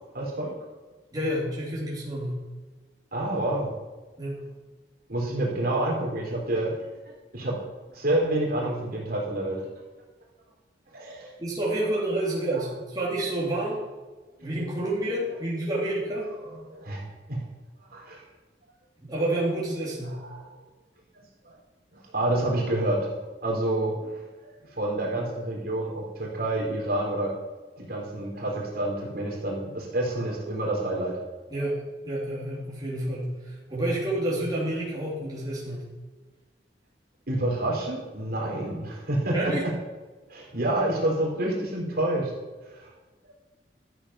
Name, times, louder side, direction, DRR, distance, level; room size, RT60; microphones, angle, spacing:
voice 1, 0.1-0.5 3.1-3.7 5.1-6.8 7.3-7.6 7.9-9.7 10.9-11.4 11.7-11.8 14.4-14.5 16.4-17.4 17.9-18.2 20.1-20.5 21.4-21.5 21.9-23.1 23.4-24.1 24.4-27.3 27.8-31.2 31.5-31.6 37.3-39.7 40.3-42.3 42.6-42.9, right 1 dB, 60° right, -3 dB, 3.7 m, -28 dB
voice 2, 1.1-2.3 4.2-4.4 11.4-13.8 14.4-16.3 19.0-20.1 31.5-31.8 32.0-35.8 39.3-39.6, right 1 dB, 25° right, -7 dB, 3.5 m, -29 dB
13.0 x 7.8 x 5.7 m, 1.3 s
head